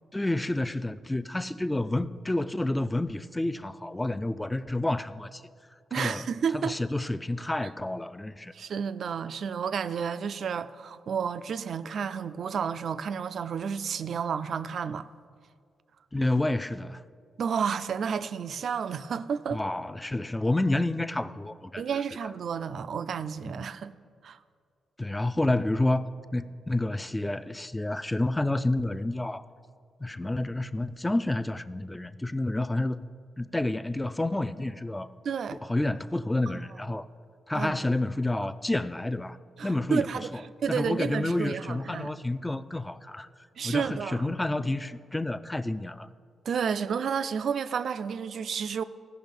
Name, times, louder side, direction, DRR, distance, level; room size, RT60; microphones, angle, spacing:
voice 1, 0.1-5.4 5.9-8.5 16.1-17.0 19.5-22.0 23.4-23.7 25.0-29.5 30.0-33.0 33.4-35.1 35.6-37.1 37.5-39.4 39.6-40.4 40.7-43.3 43.6-46.1, left 2 dB, 15° left, 0.4 m, -29 dB
voice 2, 5.9-6.7 8.5-15.1 17.4-19.6 21.8-23.9 24.2-24.4 35.2-35.6 37.5-37.7 39.6-40.3 40.6-42.1 43.6-44.3 46.5-48.8, right 7 dB, 65° right, 0.4 m, -31 dB
15.0 x 5.7 x 5.3 m
cardioid pair, 70°, 0 cm